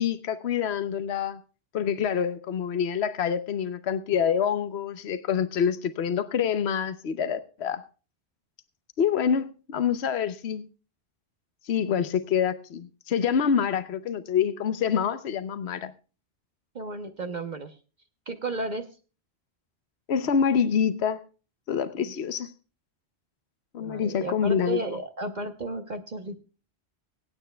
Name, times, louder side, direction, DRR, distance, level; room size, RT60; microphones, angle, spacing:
voice 1, 0.0-1.4 1.7-7.8 9.0-10.6 11.6-15.9 20.1-21.2 21.7-22.5 23.7-24.8, left 7 dB, 80° left, 1.0 m, -26 dB
voice 2, 16.7-17.8 18.3-18.9 22.0-22.1 23.8-26.4, right 2 dB, 45° right, 1.0 m, -33 dB
25.0 x 9.0 x 2.2 m
omnidirectional pair, 1.1 m